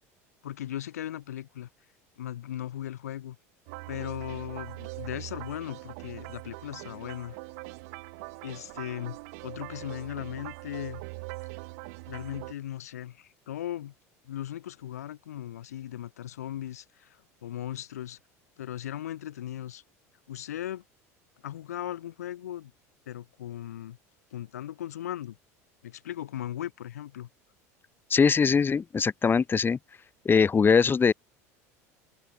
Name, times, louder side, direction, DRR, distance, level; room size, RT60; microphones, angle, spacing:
voice 1, 0.4-1.7 2.2-3.4 3.9-7.4 8.4-9.2 9.4-11.0 12.1-13.9 14.2-18.2 18.6-19.8 20.3-20.8 21.4-22.7 23.1-24.0 24.3-25.4 25.8-27.3, left 12 dB, 85° left, 4.5 m, -37 dB
sound 1, 3.7-12.5, right 29 dB, 70° right, 4.0 m, -42 dB
voice 2, 28.1-29.8 30.2-31.1, left 5 dB, 25° left, 2.4 m, -22 dB
open air
hypercardioid pair, 85°, 8 cm